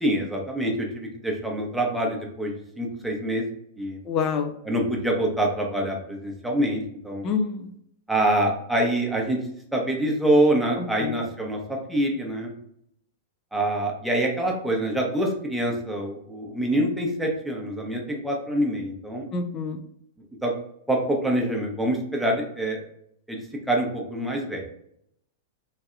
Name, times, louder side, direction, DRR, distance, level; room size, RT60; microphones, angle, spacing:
voice 1, 0.0-3.4 3.8-4.0 4.6-7.2 8.1-9.4 9.7-12.5 13.5-19.3 20.4-20.5 20.9-22.8 23.3-23.4 23.7-24.6, right 1 dB, 5° right, -1 dB, 0.9 m, -25 dB
voice 2, 4.1-4.5 7.2-7.7 11.0-11.1 19.3-19.8, left 5 dB, 35° left, 5 dB, 0.6 m, -26 dB
3.2 x 2.6 x 2.4 m, 0.72 s
figure-of-eight pair, 100°, 0 cm